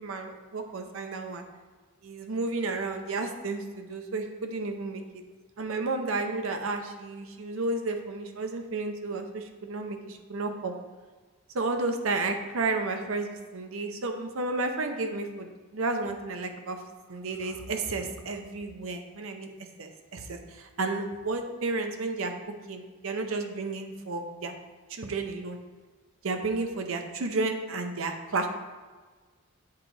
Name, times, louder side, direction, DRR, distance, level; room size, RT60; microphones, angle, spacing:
voice 1, 0.0-1.4 2.0-5.0 5.6-10.7 11.5-16.8 17.1-19.5 19.8-22.3 22.7-24.6 24.9-25.6 26.2-28.5, right 3 dB, 75° right, 5 dB, 0.6 m, -32 dB
8.2 x 3.2 x 3.8 m, 1.4 s
head